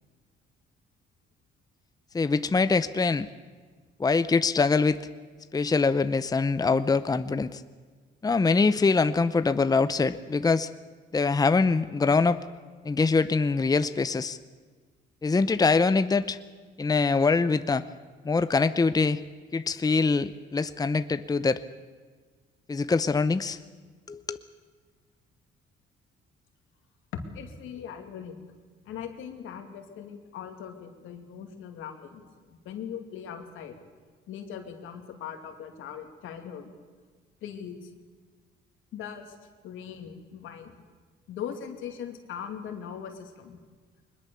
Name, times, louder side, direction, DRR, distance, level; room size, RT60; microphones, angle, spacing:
voice 1, 2.1-3.3 4.0-5.0 5.5-7.6 8.2-10.7 11.1-12.4 12.8-14.4 15.2-16.4 16.8-17.9 18.2-19.2 19.5-21.6 22.7-23.6 24.1-24.4, left 4 dB, 20° left, 12 dB, 0.7 m, -24 dB
voice 2, 27.1-28.4 28.8-32.2 32.5-33.8 34.3-36.7 37.4-37.9 38.9-39.3 39.6-40.8 41.3-43.6, left 8 dB, 85° left, 5 dB, 2.5 m, -40 dB
22.0 x 20.5 x 7.0 m, 1.5 s
cardioid pair, 90°, 20 cm